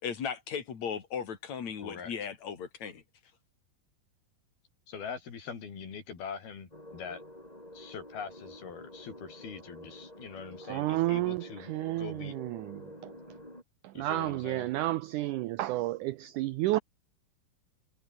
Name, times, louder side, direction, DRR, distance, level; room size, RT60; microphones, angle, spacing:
voice 1, 0.0-3.0, left 7 dB, 50° left, 4.1 m, -36 dB
voice 2, 1.8-2.1 4.9-7.2 7.7-11.7 12.0-12.4 13.9-14.7, left 6 dB, 80° left, 6.2 m, -43 dB
sound 1, 6.7-13.6, left 1 dB, 10° left, 7.4 m, -49 dB
voice 3, 10.7-13.1 14.0-16.8, right 17 dB, 90° right, 1.7 m, -31 dB
omnidirectional pair, 4.3 m